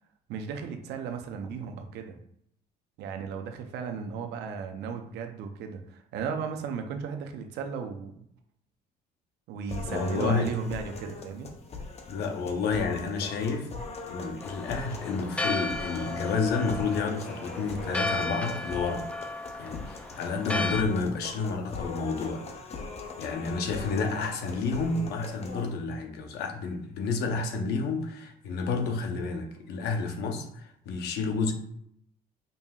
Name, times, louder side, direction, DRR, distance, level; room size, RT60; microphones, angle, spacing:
voice 1, 0.3-2.2 3.0-8.1 9.5-11.5, right 6 dB, 80° right, 0.6 m, -35 dB
sound 1, 9.7-25.7, left 4 dB, 40° left, 0.7 m, -41 dB
voice 2, 9.9-10.5 12.1-13.7 14.1-19.1 19.6-22.9 23.2-31.5, left 4 dB, 75° left, 0.7 m, -30 dB
Church bell, 14.4-20.8, left 2 dB, 5° left, 0.3 m, -34 dB
5.3 x 2.7 x 2.3 m
cardioid pair, 110°, 17 cm